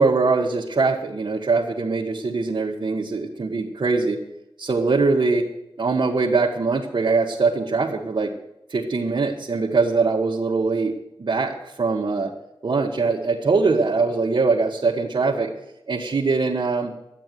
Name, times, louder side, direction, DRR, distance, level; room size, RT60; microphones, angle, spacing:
voice 1, 0.0-4.2 4.6-5.5 5.8-8.3 8.7-10.9 11.2-12.3 12.6-15.5 15.9-16.9, right 4 dB, 55° right, -2 dB, 1.5 m, -22 dB
12.0 x 9.5 x 9.2 m, 0.88 s
wide cardioid pair, 85°, 9 cm